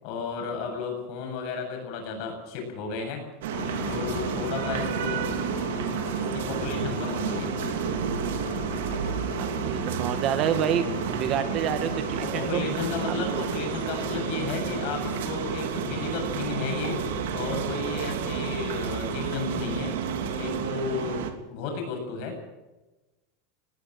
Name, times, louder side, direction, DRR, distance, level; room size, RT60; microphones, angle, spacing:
voice 1, 0.0-3.2 3.9-5.3 6.1-7.7 10.9-11.0 12.2-17.0 17.3-19.9 20.4-22.4, left 5 dB, 45° left, 4 dB, 7.8 m, -33 dB
sound 1, 3.4-21.3, right 8 dB, 75° right, 3.1 m, -31 dB
sound 2, 3.5-20.7, left 6 dB, 60° left, 5.1 m, -38 dB
voice 2, 9.4-10.9 11.2-12.6 13.1-13.3, right 9 dB, 30° right, 10 dB, 1.5 m, -28 dB
21.0 x 17.0 x 7.9 m, 1.1 s
supercardioid pair, 175°, 0 cm